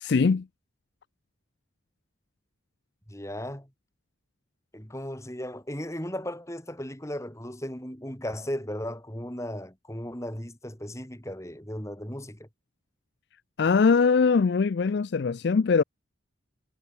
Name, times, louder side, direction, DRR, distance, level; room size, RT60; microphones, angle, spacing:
voice 1, 0.0-0.5 13.6-15.8, left 5 dB, 55° left, 0.4 m, -22 dB
voice 2, 3.1-3.7 4.7-12.5, equal, 15° left, 3.6 m, -36 dB
head